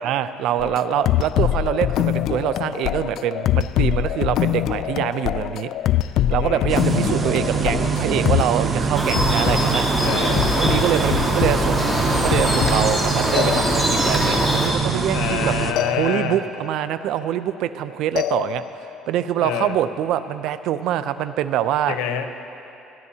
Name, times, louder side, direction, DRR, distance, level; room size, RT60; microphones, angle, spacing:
voice 1, 0.0-5.7 6.3-9.9 10.5-15.5 15.9-18.6 19.1-22.0, right 11 dB, 70° right, 13 dB, 0.5 m, -24 dB
sound 1, 0.6-8.6 9.2-9.6 10.4-11.8 12.2-13.0 13.4-14.2 15.8-16.6 18.2-19.0, left 12 dB, 65° left, 0.3 m, -24 dB
voice 2, 6.4-6.7 10.0-10.5 15.1-16.4 19.3-19.8 21.9-22.3, left 8 dB, 85° left, 7 dB, 0.9 m, -27 dB
sound 2, 6.7-15.7, right 5 dB, 35° right, 0.9 m, -24 dB
sound 3, 9.0-14.7, equal, 5° right, 3.1 m, -23 dB
30.0 x 10.5 x 2.8 m, 2.9 s
cardioid pair, 100°, 0 cm